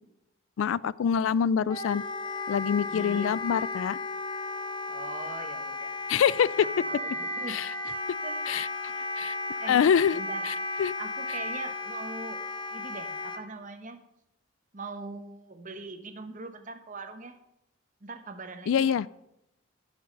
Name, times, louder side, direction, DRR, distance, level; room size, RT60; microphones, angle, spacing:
voice 1, 0.6-2.0 2.5-4.0 6.1-6.5 7.5-7.7 8.5-8.7 9.2-9.4 9.7-10.2 10.8-10.9 18.7-19.1, left 7 dB, 80° left, 21 dB, 0.3 m, -25 dB
Wind instrument woodwind instrument, 1.7-13.4, left 2 dB, 25° left, 0.9 m, -34 dB
voice 2, 2.9-3.4 4.9-6.0 6.6-7.6 8.2-8.5 8.9-9.1 9.6-9.8 10.1-10.5 11.0-12.4 12.7-14.0 14.7-17.4 18.0-19.0, right 3 dB, 40° right, 7 dB, 1.0 m, -41 dB
12.0 x 7.2 x 5.3 m, 0.83 s
head